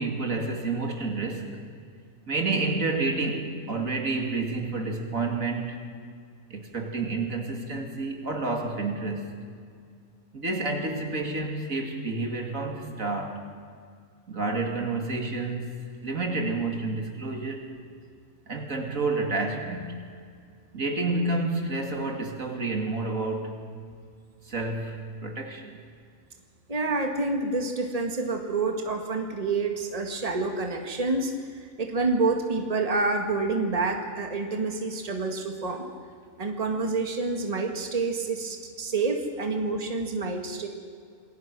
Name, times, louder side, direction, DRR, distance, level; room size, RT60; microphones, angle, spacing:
voice 1, 0.0-1.6 2.3-5.8 6.5-9.4 10.3-13.5 14.3-15.7 16.0-17.7 18.5-20.0 20.7-23.5 24.4-25.7, right 3 dB, 75° right, 3 dB, 3.0 m, -29 dB
voice 2, 26.7-31.3 31.8-35.9 36.4-40.7, right 3 dB, 25° right, 3 dB, 2.0 m, -28 dB
27.0 x 21.0 x 6.2 m, 2.1 s
omnidirectional pair, 1.4 m